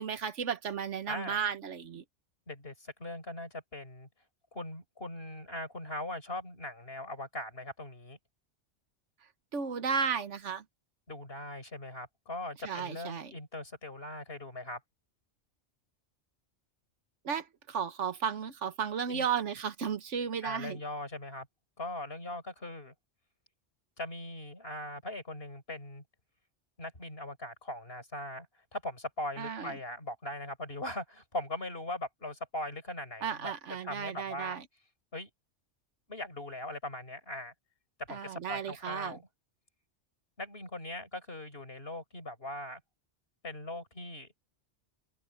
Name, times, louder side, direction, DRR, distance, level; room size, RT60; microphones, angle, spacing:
voice 1, 0.0-2.0 9.5-10.6 12.6-13.3 17.2-20.8 29.4-29.7 33.2-34.6 38.1-39.2, right 7 dB, 80° right, 1.4 m, -34 dB
voice 2, 1.1-1.4 2.5-4.1 4.5-8.2 11.1-14.8 19.1-19.3 20.4-21.5 21.8-22.9 24.0-26.0 26.8-28.5 28.7-33.5 33.8-34.6 35.1-35.3 36.1-37.5 38.0-39.2 40.4-42.8 43.4-44.3, left 1 dB, 55° left, 5.0 m, -40 dB
open air
omnidirectional pair, 1.2 m